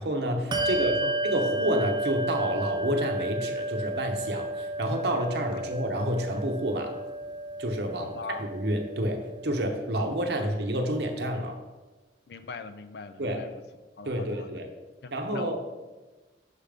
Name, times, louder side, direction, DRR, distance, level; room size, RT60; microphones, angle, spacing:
voice 1, 0.0-6.9 7.6-8.1 8.4-11.6 13.2-13.4 14.0-14.7 15.1-15.6, right 1 dB, 60° right, 4 dB, 0.8 m, -29 dB
Bell, 0.5-10.5, right 1 dB, 25° right, 0.4 m, -33 dB
voice 2, 0.6-1.1 5.5-5.6 8.0-8.5 12.3-13.6 14.0-14.6 15.0-15.6, left 4 dB, 60° left, 12 dB, 0.4 m, -41 dB
6.6 x 3.4 x 5.1 m, 1.2 s
head